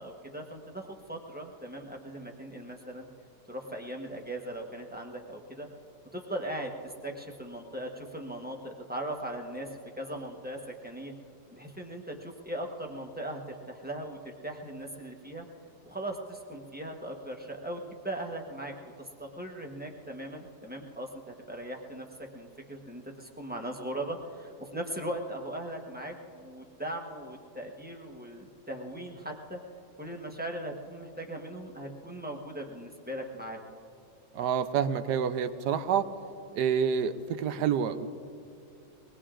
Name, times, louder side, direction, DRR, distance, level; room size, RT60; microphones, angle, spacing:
voice 1, 0.0-3.1 3.5-5.7 6.1-9.7 10.0-11.1 11.6-15.5 15.8-21.1 21.5-22.1 22.3-29.6 30.0-33.7, right 1 dB, 10° right, 1 dB, 0.7 m, -39 dB
voice 2, 34.3-36.1 36.5-38.1, right 7 dB, 70° right, 10 dB, 1.1 m, -28 dB
23.0 x 20.0 x 2.5 m, 2.4 s
omnidirectional pair, 2.0 m